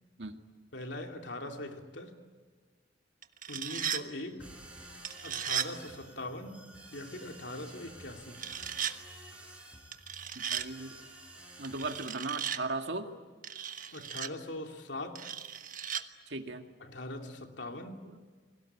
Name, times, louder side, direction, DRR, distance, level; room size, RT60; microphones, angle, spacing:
voice 1, 0.7-2.2 3.5-4.5 5.2-8.4 13.9-15.3 16.8-18.2, left 1 dB, 80° left, 2.8 m, -41 dB
sound 1, 3.2-4.0 5.0-5.7 8.3-9.0 9.9-10.7 11.6-12.6 13.4-14.3 15.2-16.0, right 8 dB, 50° right, 1.2 m, -36 dB
sound 2, 4.4-12.1, right 1 dB, 5° right, 6.5 m, -51 dB
voice 2, 10.4-11.0 11.6-13.1 16.3-16.7, right 3 dB, 75° right, 2.0 m, -37 dB
30.0 x 22.0 x 8.7 m
head